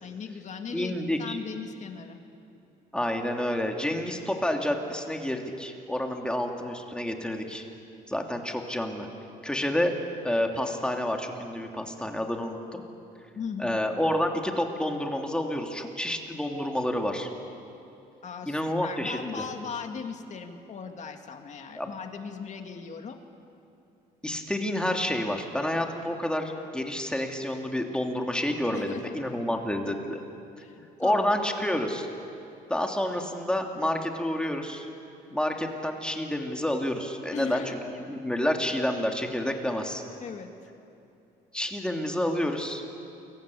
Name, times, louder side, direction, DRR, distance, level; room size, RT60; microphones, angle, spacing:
voice 1, 0.0-2.2 13.4-13.8 18.2-23.2 28.7-29.2 30.6-31.3 37.3-37.8 40.2-40.5, left 6 dB, 45° left, 5 dB, 2.4 m, -38 dB
voice 2, 0.7-1.4 2.9-7.7 8.1-9.1 9.4-9.9 10.2-12.8 13.6-17.3 18.5-19.4 21.8-21.9 24.2-30.2 31.0-32.1 32.7-34.9 35.3-37.8 38.1-40.0 41.5-42.8, left 1 dB, 5° left, 3 dB, 2.9 m, -29 dB
29.0 x 22.5 x 8.6 m, 2.7 s
cardioid pair, 110°, 17 cm